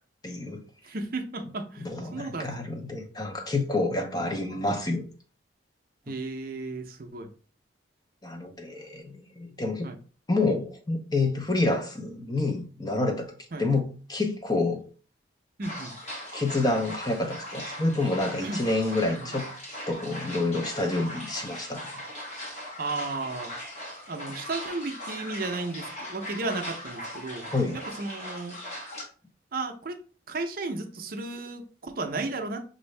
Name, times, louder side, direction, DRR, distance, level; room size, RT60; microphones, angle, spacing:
voice 1, 0.2-0.6 1.8-5.0 8.2-9.9 10.3-13.3 13.6-14.8 16.3-19.5 19.9-21.9 27.5-27.8, left 2 dB, 20° left, 0.6 m, -28 dB
voice 2, 0.8-2.6 6.1-7.3 9.8-10.0 13.5-13.6 15.6-15.9 18.4-18.6 19.1-19.3 22.8-23.5 24.1-28.6 29.5-30.0 30.3-32.6, right 3 dB, 50° right, 0.6 m, -34 dB
sound 1, 15.6-29.0, equal, 35° left, 1.2 m, -39 dB
6.1 x 2.6 x 3.2 m
head